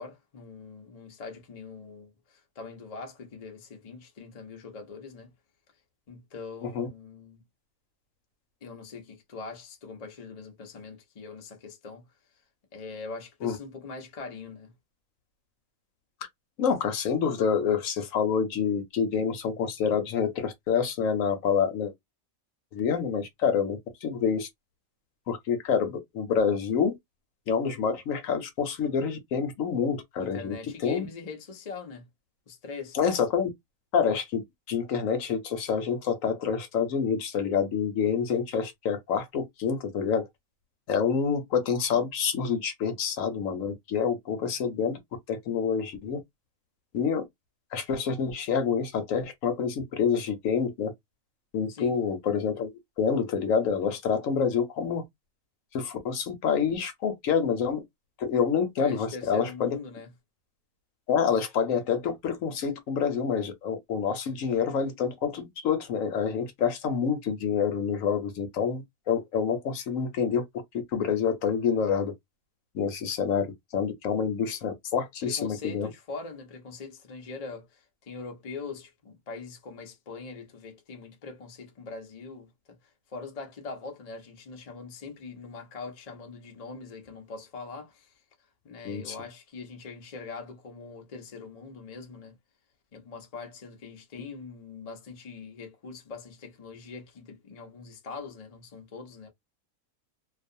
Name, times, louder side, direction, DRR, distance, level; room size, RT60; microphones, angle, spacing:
voice 1, 0.0-5.3 6.1-7.4 8.6-12.1 12.7-14.7 30.2-32.1 32.5-33.0 51.7-51.9 58.8-60.1 75.2-88.1 88.6-92.3 92.9-99.3, left 4 dB, 40° left, 0.5 m, -42 dB
voice 2, 16.6-21.9 22.7-24.5 25.3-27.0 27.5-30.5 30.8-31.1 32.9-33.5 33.9-40.3 40.9-45.0 45.3-46.2 46.9-47.2 47.7-50.9 51.5-52.7 53.0-55.0 55.7-57.8 58.2-59.7 61.1-70.5 70.9-72.1 72.7-75.9 88.8-89.2, left 6 dB, 70° left, 1.0 m, -27 dB
2.4 x 2.3 x 2.6 m
omnidirectional pair, 1.5 m